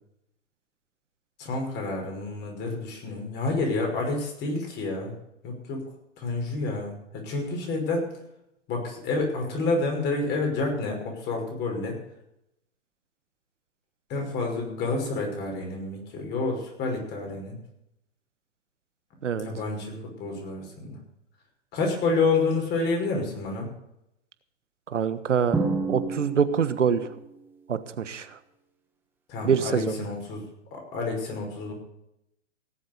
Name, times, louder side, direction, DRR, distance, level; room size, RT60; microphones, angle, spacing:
voice 1, 1.4-5.1 5.4-5.8 6.2-8.1 8.7-12.0 14.1-17.5 19.3-19.9 20.2-21.0 21.7-23.7 29.3-30.4 30.7-31.7, left 3 dB, 30° left, 1 dB, 5.5 m, -29 dB
voice 2, 24.9-25.6 25.9-27.1 27.7-28.3 29.4-30.0, right 7 dB, 80° right, 12 dB, 1.4 m, -25 dB
Drum, 25.5-27.2, right 3 dB, 5° right, 1.7 m, -29 dB
18.0 x 7.9 x 6.8 m, 0.81 s
hypercardioid pair, 125°, 36 cm